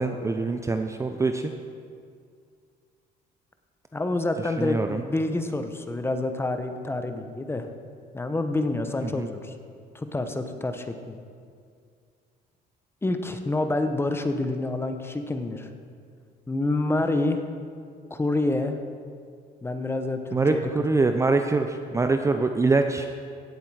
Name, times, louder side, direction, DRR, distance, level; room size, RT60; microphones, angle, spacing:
voice 1, 0.0-1.5 4.6-5.0 9.0-9.3 20.3-23.1, right 3 dB, 15° right, 6 dB, 0.5 m, -24 dB
voice 2, 3.9-7.7 8.1-9.5 9.9-11.2 13.0-15.7 16.5-17.4 18.1-18.8 19.6-20.6, left 2 dB, 15° left, 7 dB, 0.9 m, -27 dB
16.0 x 7.6 x 4.8 m, 2.2 s
cardioid pair, 110°, 17 cm